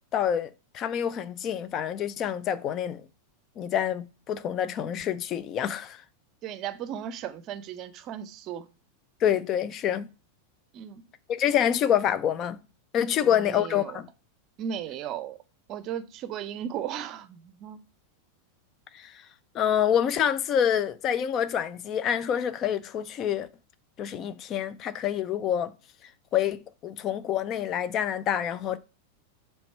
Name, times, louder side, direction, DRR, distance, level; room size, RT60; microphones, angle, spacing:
voice 1, 0.1-3.1 3.6-6.0 9.2-10.1 11.3-12.6 12.9-14.1 18.9-19.2 19.5-23.5 24.0-25.7 26.3-28.8, left 9 dB, 30° left, 0.5 m, -27 dB
voice 2, 6.4-8.7 10.7-11.0 13.2-14.0 14.6-15.4 15.7-17.8, right 9 dB, 35° right, 0.6 m, -36 dB
7.0 x 3.3 x 4.5 m
figure-of-eight pair, 90°, 0 cm